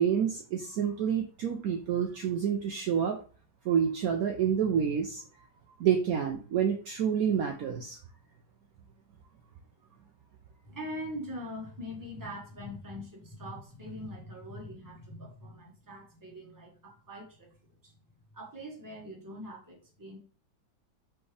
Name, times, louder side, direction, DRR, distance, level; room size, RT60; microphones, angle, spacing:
voice 1, 0.0-3.2 3.6-5.2 5.8-8.0, right 8 dB, 80° right, 3 dB, 0.8 m, -28 dB
voice 2, 10.6-18.0 18.3-20.2, equal, 15° right, -2 dB, 0.9 m, -42 dB
4.4 x 3.4 x 3.2 m, 0.39 s
omnidirectional pair, 2.1 m